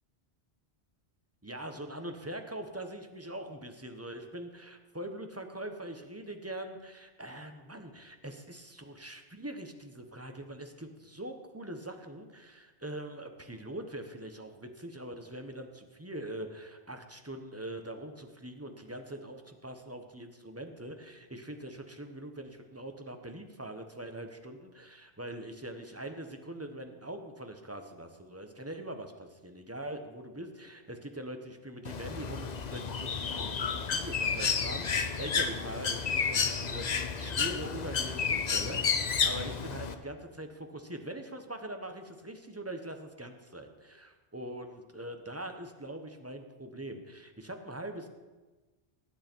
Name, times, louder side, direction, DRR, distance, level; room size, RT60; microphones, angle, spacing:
voice 1, 1.4-48.1, right 1 dB, 15° right, 5 dB, 1.0 m, -43 dB
Bird, 31.8-39.9, left 5 dB, 45° left, 0.8 m, -31 dB
17.5 x 9.4 x 4.6 m, 1.2 s
omnidirectional pair, 1.1 m